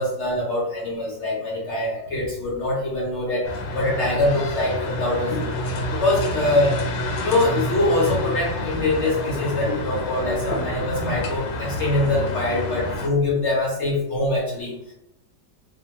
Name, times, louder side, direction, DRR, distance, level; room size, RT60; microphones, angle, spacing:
voice 1, 0.0-5.6 5.9-6.8 7.1-14.8, left 2 dB, 65° left, -4 dB, 0.7 m, -24 dB
sound 1, 3.4-13.1, left 1 dB, 85° left, 1.2 m, -28 dB
2.9 x 2.1 x 2.8 m, 0.78 s
omnidirectional pair, 1.9 m